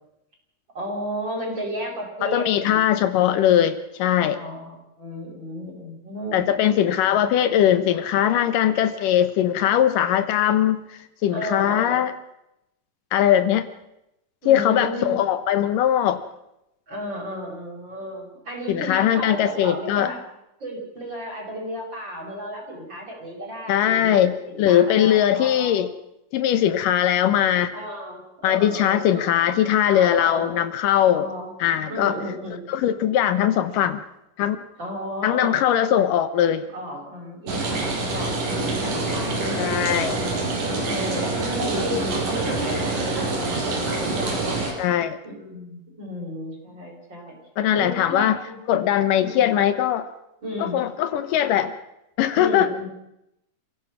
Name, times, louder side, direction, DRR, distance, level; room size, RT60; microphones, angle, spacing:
voice 1, 0.7-2.9 4.3-7.2 11.3-12.0 14.4-15.3 16.9-20.2 20.6-25.8 27.7-29.3 29.8-30.5 31.1-31.5 31.9-32.6 34.8-35.6 36.7-39.7 40.2-43.6 44.0-44.7 45.2-47.4 47.7-48.6 49.2-49.5 50.4-50.8 52.4-52.9, equal, 30° right, 0 dB, 6.3 m, -33 dB
voice 2, 2.2-4.4 6.3-10.8 11.2-12.1 13.1-13.7 14.5-16.2 18.7-20.1 23.7-25.9 26.3-27.7 28.4-31.3 31.6-32.2 32.7-34.0 34.4-34.6 35.2-36.6 39.6-40.2 44.8-45.2 47.6-48.4 48.7-50.1 50.6-51.7 52.2-52.7, left 11 dB, 75° left, 11 dB, 2.5 m, -20 dB
sound 1, 37.5-44.7, right 2 dB, 70° right, 6.0 m, -26 dB
29.5 x 16.5 x 6.0 m, 0.86 s
omnidirectional pair, 3.9 m